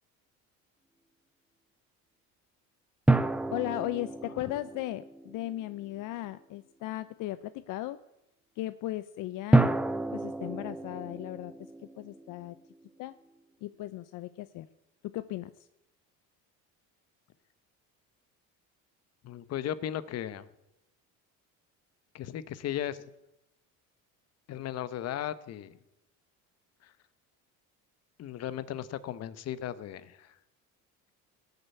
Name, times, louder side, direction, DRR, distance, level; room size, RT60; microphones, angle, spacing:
sound 1, 3.1-5.9 9.5-12.9, right 2 dB, 5° right, 0.5 m, -29 dB
voice 1, 3.5-8.0 8.6-9.7 10.1-11.5 12.0-12.6 13.0-13.2 13.6-14.7 15.0-15.5, left 16 dB, 65° left, 13 dB, 0.7 m, -36 dB
voice 2, 19.2-20.5 22.1-23.0 24.5-25.7 26.8-26.9 28.2-30.3, left 11 dB, 50° left, 15 dB, 1.0 m, -36 dB
18.0 x 6.8 x 8.2 m, 0.90 s
cardioid pair, 130°, 34 cm